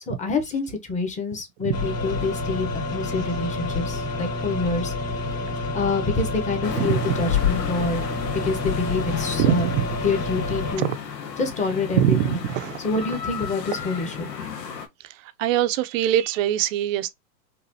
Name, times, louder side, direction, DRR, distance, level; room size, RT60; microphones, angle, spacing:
voice 1, 0.1-4.9 5.7-8.0 8.3-9.7 10.0-10.9 11.4-12.4 12.8-14.3, left 3 dB, 15° left, 1.0 m, -27 dB
sound 1, 1.7-10.8, left 4 dB, 50° left, 2.2 m, -28 dB
sound 2, 6.6-14.9, left 7 dB, 90° left, 1.2 m, -34 dB
voice 2, 9.4-9.9 10.8-11.0 11.9-12.8 15.4-17.1, right 11 dB, 55° right, 0.6 m, -23 dB
4.0 x 2.6 x 2.7 m
hypercardioid pair, 120°, 48 cm